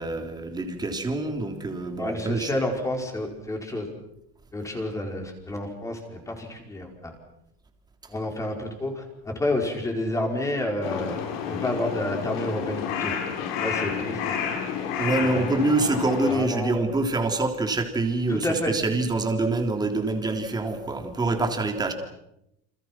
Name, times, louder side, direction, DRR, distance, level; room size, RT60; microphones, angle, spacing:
voice 1, 0.0-2.6 15.0-21.9, right 2 dB, 15° right, 5 dB, 3.3 m, -26 dB
voice 2, 2.0-3.9 4.5-7.1 8.1-11.2 11.5-13.1 13.6-14.5 15.3-15.5 16.3-16.7 18.3-18.7, left 1 dB, 10° left, 3 dB, 4.8 m, -29 dB
Crow, 10.8-16.3, left 7 dB, 85° left, 7.6 m, -30 dB
29.5 x 27.5 x 6.0 m, 0.83 s
cardioid pair, 165°, 29 cm